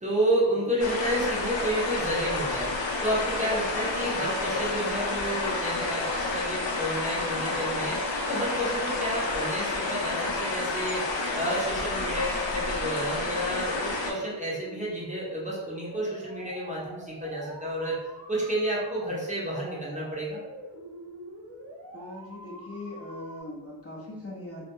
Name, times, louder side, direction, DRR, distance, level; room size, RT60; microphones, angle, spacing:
voice 1, 0.0-2.7 3.0-8.0 8.3-11.1 11.3-18.0 18.3-20.4, right 1 dB, 15° right, -7 dB, 0.5 m, -30 dB
sound 1, 0.8-14.1, left 3 dB, 90° left, 0.5 m, -30 dB
sound 2, 6.9-23.4, right 1 dB, 75° right, 0.7 m, -46 dB
voice 2, 21.9-24.6, left 1 dB, 35° left, -5 dB, 0.5 m, -40 dB
2.1 x 2.1 x 2.9 m, 1.1 s
wide cardioid pair, 130°, 44 cm